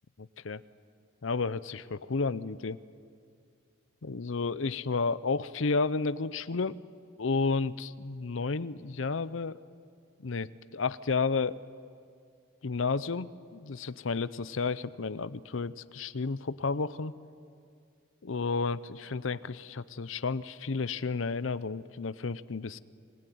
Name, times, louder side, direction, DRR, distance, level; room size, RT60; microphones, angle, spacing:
voice 1, 0.2-0.6 1.2-2.8 4.0-6.8 7.2-9.6 10.2-11.6 12.6-17.1 18.2-22.8, left 4 dB, 80° left, 16 dB, 0.7 m, -32 dB
27.0 x 20.0 x 9.4 m, 2.3 s
head